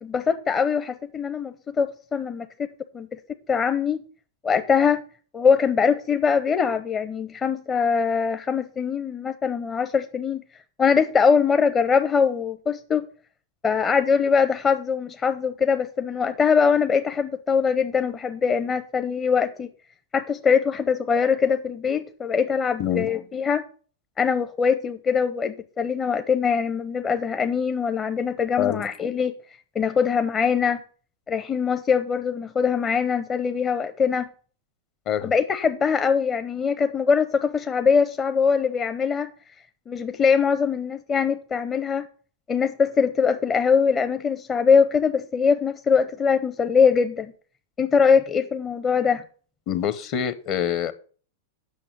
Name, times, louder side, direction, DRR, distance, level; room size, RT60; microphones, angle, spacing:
voice 1, 0.0-2.5 2.9-3.2 3.5-4.0 4.4-5.0 5.3-10.4 10.8-13.1 13.6-19.7 20.1-23.6 24.2-29.3 29.7-30.8 31.3-34.3 35.2-39.3 39.9-42.1 42.5-47.3 47.8-49.2, left 6 dB, 25° left, 0.8 m, -22 dB
voice 2, 49.7-50.9, left 9 dB, 45° left, 1.1 m, -25 dB
8.6 x 6.3 x 7.8 m
figure-of-eight pair, 95°, 0 cm